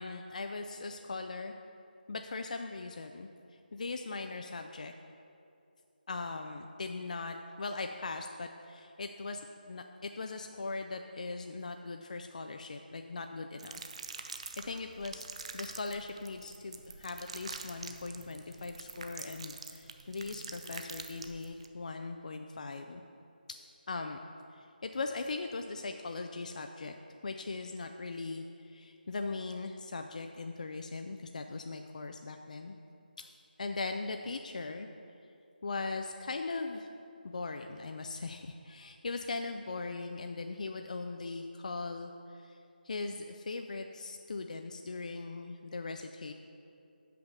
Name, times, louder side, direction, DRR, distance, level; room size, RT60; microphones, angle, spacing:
voice 1, 0.0-1.5 2.1-3.3 3.7-4.9 6.1-13.8 14.6-15.2 15.5-23.0 23.9-24.2 24.5-26.9 27.2-32.7 33.2-33.3 33.6-34.9 35.6-36.9 37.2-42.6 42.8-46.3, left 3 dB, 50° left, 5 dB, 0.4 m, -39 dB
sound 1, 13.6-21.7, right 4 dB, 35° right, 0.4 m, -46 dB
6.2 x 5.8 x 6.7 m, 2.6 s
figure-of-eight pair, 160°, 5 cm